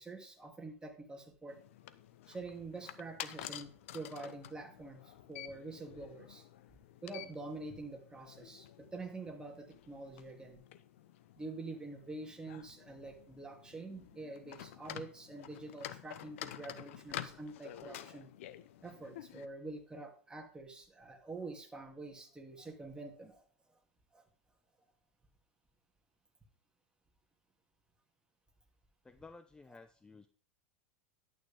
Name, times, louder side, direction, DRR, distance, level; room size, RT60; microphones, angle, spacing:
voice 1, 0.0-1.6 2.3-6.5 7.0-8.7 8.9-10.6 11.4-18.3 18.8-23.5 24.1-24.2, right 3 dB, 10° right, 1 dB, 3.0 m, -46 dB
sound 1, 1.5-19.5, left 12 dB, 65° left, 0.8 m, -50 dB
voice 2, 29.0-30.3, left 3 dB, 10° left, 10 dB, 0.7 m, -55 dB
11.0 x 9.4 x 3.7 m, 0.41 s
hypercardioid pair, 90°, 7 cm